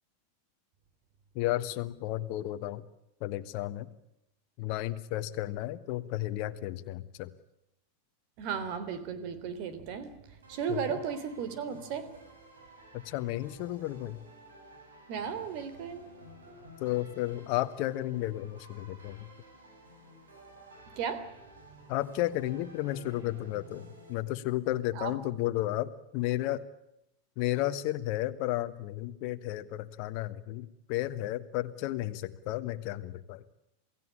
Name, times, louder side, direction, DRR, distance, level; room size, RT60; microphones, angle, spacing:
voice 1, 1.3-2.8 3.2-3.9 4.6-7.3 10.7-11.0 12.9-14.2 16.8-19.3 21.9-26.6 27.4-33.4, left 15 dB, 50° left, 10 dB, 1.3 m, -33 dB
voice 2, 8.4-10.1 10.5-12.1 15.1-16.1 21.0-21.3 25.0-25.1, right 7 dB, 50° right, 13 dB, 3.5 m, -35 dB
sound 1, 10.4-24.1, right 1 dB, 75° right, 7.7 m, -54 dB
28.0 x 17.0 x 8.6 m, 0.84 s
figure-of-eight pair, 90°, 0 cm